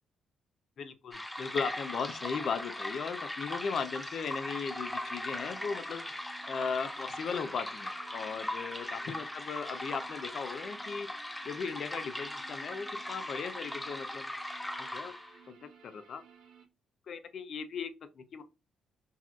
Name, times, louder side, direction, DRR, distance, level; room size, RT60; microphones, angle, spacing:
voice 1, 0.8-11.1 11.4-14.3 14.8-15.1 15.6-16.2 17.1-17.9 18.2-18.4, left 5 dB, 60° left, 0.5 m, -37 dB
sound 1, 1.1-15.4, left 1 dB, 10° left, 0.5 m, -39 dB
sound 2, 4.6-16.6, right 5 dB, 90° right, 1.0 m, -58 dB
4.1 x 2.4 x 2.3 m
cardioid pair, 90°, 0 cm